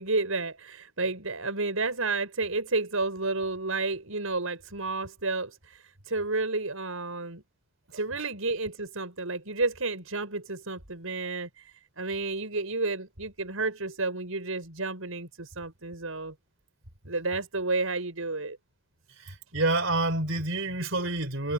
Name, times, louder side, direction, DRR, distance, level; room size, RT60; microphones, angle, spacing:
voice 1, 0.0-7.4 7.9-16.3 17.0-18.6, right 3 dB, 85° right, 5.8 m, -31 dB
voice 2, 19.2-21.5, right 2 dB, 65° right, 5.4 m, -28 dB
head